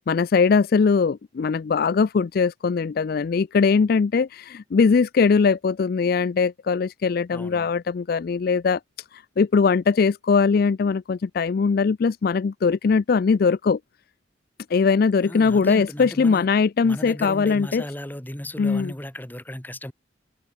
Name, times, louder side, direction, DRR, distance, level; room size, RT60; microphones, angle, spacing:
voice 1, 0.0-8.8 9.1-13.8 14.7-17.8 18.6-18.9, left 5 dB, 50° left, 0.4 m, -21 dB
voice 2, 7.3-7.7 15.2-16.5 16.8-19.9, left 1 dB, 10° left, 1.4 m, -35 dB
head